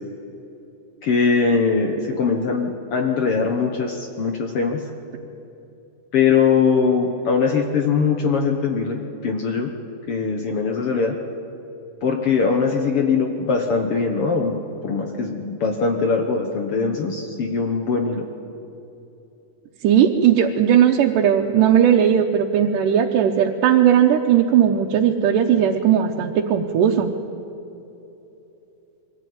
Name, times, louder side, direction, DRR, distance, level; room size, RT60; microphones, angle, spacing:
voice 1, 1.0-4.8 6.1-9.7 10.1-11.2 12.0-14.6 14.8-18.3, left 5 dB, 60° left, 3 dB, 1.7 m, -21 dB
voice 2, 19.8-27.1, right 9 dB, 85° right, 0 dB, 2.5 m, -17 dB
22.5 x 15.5 x 9.4 m, 3.0 s
omnidirectional pair, 3.7 m